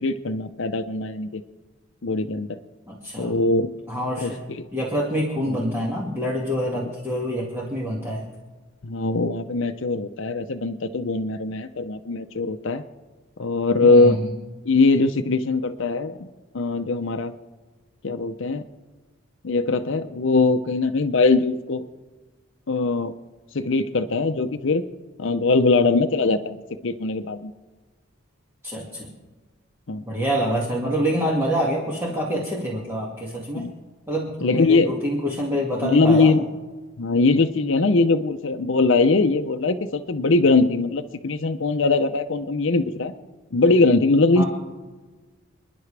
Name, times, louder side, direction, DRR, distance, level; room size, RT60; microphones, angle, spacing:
voice 1, 0.0-1.4 2.0-2.6 3.2-3.7 4.2-4.3 4.6-4.7 5.5-5.6 6.7-6.9 8.8-12.8 13.4-14.2 14.6-16.3 16.5-17.3 18.0-18.6 19.4-21.8 22.7-23.1 23.5-24.9 25.2-27.5 29.9-30.0 33.5-33.7 34.4-34.9 35.8-36.4 37.0-43.1 43.5-44.4, left 3 dB, 60° left, 8 dB, 0.6 m, -21 dB
voice 2, 2.9-3.4 3.9-4.4 4.7-8.2 13.8-14.2 28.6-29.1 30.1-33.6 34.1-36.3 44.4-44.5, equal, 10° right, -5 dB, 2.1 m, -26 dB
29.5 x 10.5 x 3.4 m, 1.3 s
head